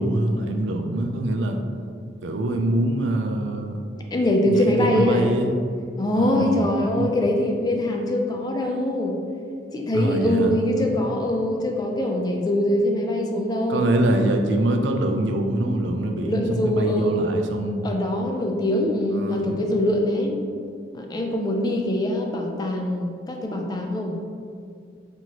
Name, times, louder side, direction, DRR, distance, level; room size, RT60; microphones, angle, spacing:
voice 1, 0.0-1.6 2.2-3.8 4.4-5.5 6.1-6.7 7.0-7.1 9.9-10.9 13.7-17.9 19.2-19.5, right 1 dB, 85° right, 4 dB, 0.4 m, -24 dB
voice 2, 4.1-5.3 6.0-9.2 9.7-13.8 16.2-17.3 17.8-20.4 20.9-24.2, left 1 dB, 20° left, 2 dB, 0.3 m, -23 dB
4.4 x 2.9 x 2.8 m, 2.3 s
head